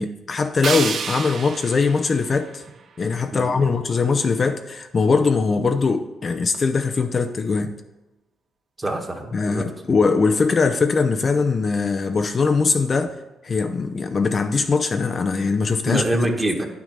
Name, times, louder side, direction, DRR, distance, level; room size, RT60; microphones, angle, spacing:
voice 1, 0.0-2.6 3.0-7.8 9.3-13.2 13.4-16.1, left 4 dB, 40° left, 0.6 m, -21 dB
sound 1, 0.6-3.6, right 6 dB, 55° right, 0.7 m, -31 dB
voice 2, 3.3-3.7 8.8-9.6 15.8-16.7, right 1 dB, 20° right, 1.5 m, -25 dB
9.8 x 6.0 x 5.4 m
cardioid pair, 90°, 0 cm